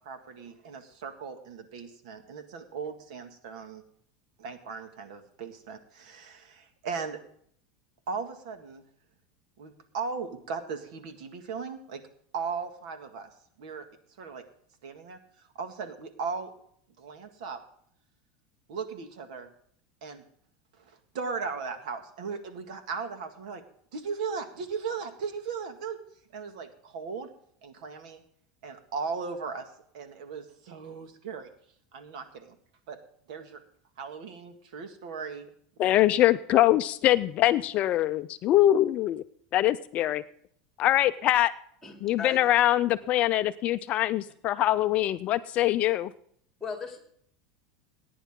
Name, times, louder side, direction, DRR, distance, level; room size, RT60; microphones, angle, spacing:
voice 1, 0.0-3.8 4.4-7.2 8.1-8.8 9.6-12.0 12.3-13.3 13.6-13.9 14.2-14.4 14.8-15.2 15.6-16.5 17.0-17.6 18.7-19.5 20.0-20.2 20.8-23.6 23.9-26.0 26.3-27.3 27.6-28.2 28.6-29.7 29.9-31.5 31.9-32.6 32.9-33.0 33.3-33.6 34.0-35.5 35.8-36.2, right 5 dB, 80° right, 7 dB, 1.9 m, -37 dB
voice 2, 35.8-39.2 39.5-40.2 40.8-41.5 42.0-46.1, left 14 dB, 35° left, 12 dB, 0.4 m, -23 dB
voice 3, 41.8-42.6 44.5-44.6 46.6-47.0, left 5 dB, 10° left, 2 dB, 2.8 m, -38 dB
19.0 x 10.0 x 3.7 m, 0.64 s
supercardioid pair, 155°, 4 cm